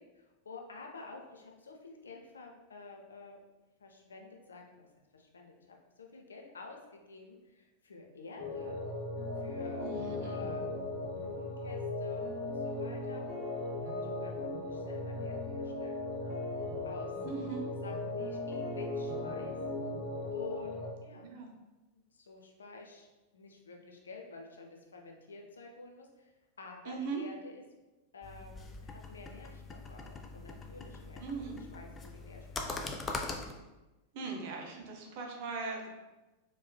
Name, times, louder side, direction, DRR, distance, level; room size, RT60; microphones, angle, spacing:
voice 1, 0.0-3.4 3.8-4.9 5.1-8.8 9.4-9.9 10.2-10.7 11.0-16.4 16.8-17.1 17.8-19.5 20.3-21.3 21.9-23.1 23.3-27.6 28.1-33.3 34.2-34.4, left 3 dB, 70° left, 2 dB, 0.5 m, -50 dB
sound 1, 8.4-20.9, left 2 dB, 35° left, 1.0 m, -37 dB
voice 2, 9.8-10.4 17.2-17.6 21.1-21.5 26.9-27.2 31.2-31.6 34.1-35.9, right 4 dB, 50° right, 2 dB, 0.7 m, -39 dB
sound 2, 28.2-33.5, left 3 dB, 20° left, 0.4 m, -42 dB
4.4 x 3.0 x 2.2 m, 1.1 s
figure-of-eight pair, 90°, 0 cm